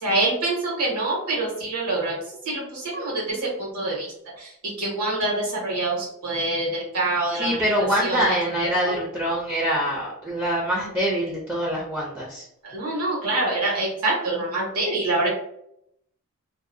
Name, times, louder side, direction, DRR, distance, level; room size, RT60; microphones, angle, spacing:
voice 1, 0.0-2.2 2.4-4.5 4.8-7.6 8.0-8.2 8.6-8.9 12.6-15.3, right 2 dB, 85° right, -4 dB, 1.3 m, -26 dB
voice 2, 7.3-12.5, equal, 10° right, -4 dB, 0.4 m, -24 dB
2.6 x 2.1 x 2.6 m, 0.76 s
head